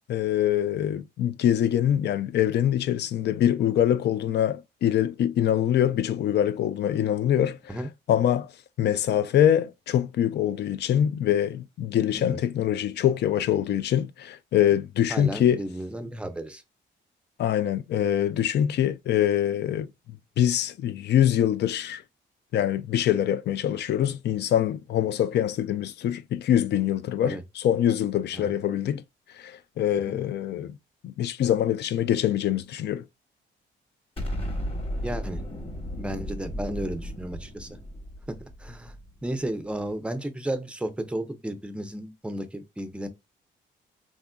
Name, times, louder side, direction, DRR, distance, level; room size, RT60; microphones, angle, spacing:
voice 1, 0.1-8.5 8.8-15.6 17.4-19.9 20.4-22.0 22.5-29.0 29.4-30.8 31.0-33.0, left 10 dB, 60° left, 0.4 m, -24 dB
voice 2, 15.1-16.6 27.2-27.4 28.3-28.5 30.1-30.2 35.0-35.4 36.0-37.8 38.3-38.9 39.2-43.1, right 1 dB, 5° right, 0.5 m, -33 dB
Explosion, 34.2-39.3, equal, 30° left, 1.0 m, -34 dB
3.4 x 2.5 x 2.2 m
cardioid pair, 90°, 20 cm